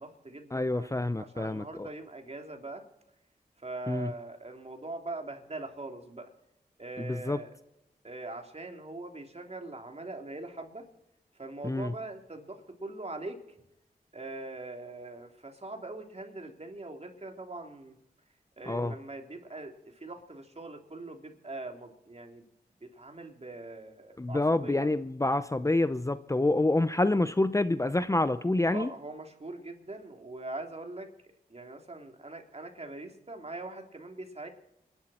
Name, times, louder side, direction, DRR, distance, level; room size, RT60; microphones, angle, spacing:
voice 1, 0.0-2.8 3.6-6.3 6.8-7.5 8.0-10.8 11.3-13.4 14.1-17.9 18.6-22.4 22.8-24.9 28.7-31.1 31.5-34.5, right 2 dB, 40° right, 3 dB, 3.3 m, -42 dB
voice 2, 0.5-1.9 3.9-4.1 7.0-7.4 11.6-11.9 18.7-18.9 24.2-28.9, left 2 dB, 20° left, 13 dB, 0.7 m, -27 dB
27.5 x 11.5 x 4.4 m, 0.87 s
cardioid pair, 50°, 17 cm